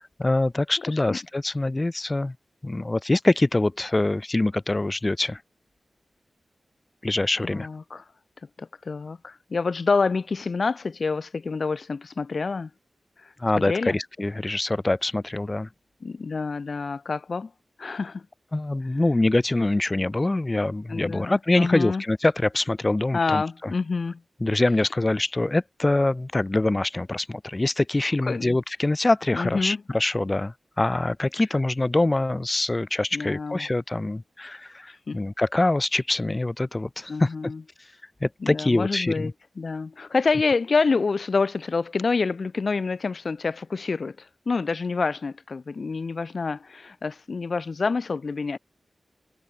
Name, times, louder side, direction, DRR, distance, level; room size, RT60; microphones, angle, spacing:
voice 1, 0.2-2.4 2.6-5.4 7.0-7.7 13.4-15.7 18.5-23.7 24.4-37.5 38.2-39.3, left 2 dB, 25° left, 0.4 m, -24 dB
voice 2, 0.8-1.2 7.4-8.0 8.6-12.7 13.2-14.0 16.0-17.5 17.8-18.3 20.9-22.0 23.1-24.2 28.2-28.6 29.3-29.8 33.1-33.7 35.1-35.2 37.1-37.6 38.4-48.6, left 4 dB, 60° left, 0.9 m, -27 dB
wide cardioid pair, 80°, 0 cm